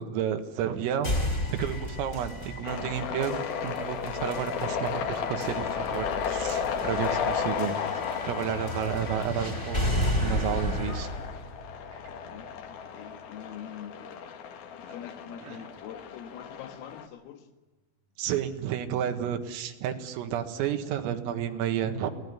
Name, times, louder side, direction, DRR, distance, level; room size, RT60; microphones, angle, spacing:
voice 1, 0.0-11.1 15.4-15.6 18.2-22.1, right 9 dB, 90° right, 4.3 m, -31 dB
sound 1, 1.0-13.0, left 1 dB, 20° left, 2.4 m, -33 dB
sound 2, 2.6-17.1, left 7 dB, 60° left, 2.9 m, -34 dB
voice 2, 12.3-14.0 14.8-17.5, left 9 dB, 85° left, 4.4 m, -44 dB
23.5 x 18.0 x 9.6 m
omnidirectional pair, 5.9 m